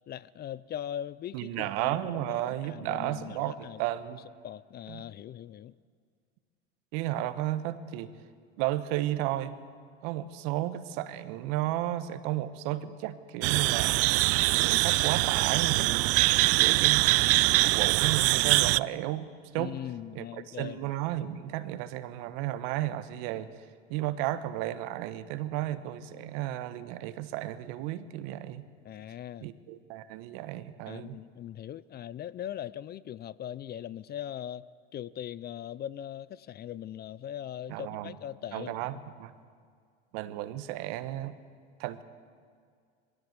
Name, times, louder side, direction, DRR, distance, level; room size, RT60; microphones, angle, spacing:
voice 1, 0.1-3.8 4.4-5.7 19.6-20.8 28.8-29.5 30.9-34.6 34.9-39.0, left 10 dB, 35° left, 19 dB, 0.5 m, -40 dB
voice 2, 1.3-4.2 4.9-5.0 6.9-8.1 8.6-9.5 10.0-14.0 14.5-16.1 16.5-17.1 17.4-19.3 19.5-19.8 20.1-23.5 23.9-28.6 29.4-31.2 37.7-38.1 38.5-39.3 40.1-41.3 41.8-42.0, right 14 dB, 70° right, 12 dB, 1.2 m, -33 dB
sound 1, 13.4-18.8, right 22 dB, 55° right, 0.4 m, -23 dB
20.5 x 16.0 x 8.1 m, 2.1 s
supercardioid pair, 100°, 30 cm